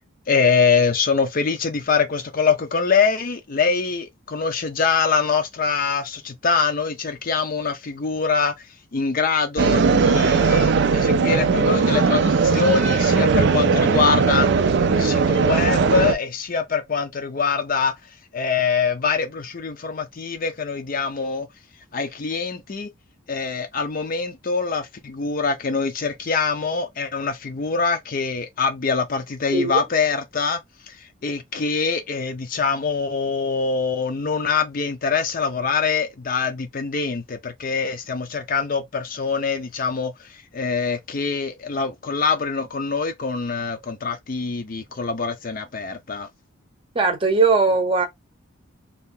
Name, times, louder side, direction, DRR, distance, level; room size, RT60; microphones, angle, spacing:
voice 1, 0.3-8.5 8.9-14.5 14.9-17.9 18.3-21.5 21.9-22.9 23.3-30.6 30.9-46.3, left 5 dB, 40° left, 0.4 m, -24 dB
sound 1, 9.6-16.1, right 5 dB, 55° right, 0.4 m, -18 dB
voice 2, 29.5-29.8 46.9-48.1, right 4 dB, 25° right, 0.7 m, -19 dB
2.7 x 2.3 x 3.6 m
head